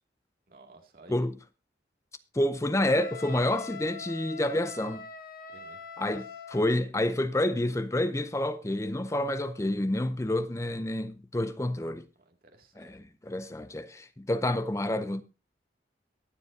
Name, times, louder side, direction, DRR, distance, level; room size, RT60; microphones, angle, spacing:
voice 1, 0.5-1.3 5.5-6.4 12.3-13.0, right 2 dB, 50° right, 2.3 m, -55 dB
voice 2, 2.3-5.0 6.0-12.0 12.8-15.2, left 1 dB, 15° left, 0.6 m, -29 dB
Wind instrument woodwind instrument, 2.8-6.7, left 5 dB, 50° left, 1.1 m, -43 dB
22.5 x 7.5 x 2.7 m
head